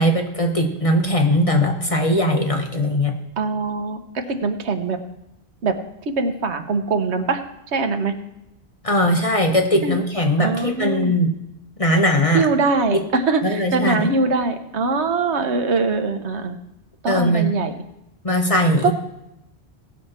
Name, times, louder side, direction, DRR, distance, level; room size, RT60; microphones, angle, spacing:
voice 1, 0.0-3.1 8.8-11.3 11.8-12.5 12.9-13.0 13.4-14.1 17.1-17.5 18.2-18.9, equal, 35° left, 3 dB, 1.1 m, -19 dB
voice 2, 3.4-5.0 5.6-5.8 6.1-7.4 7.7-8.1 9.8-10.0 10.4-11.2 12.3-16.6 17.0-17.7 18.8-18.9, right 3 dB, 80° right, 8 dB, 1.3 m, -22 dB
17.5 x 6.5 x 4.3 m, 0.86 s
omnidirectional pair, 1.1 m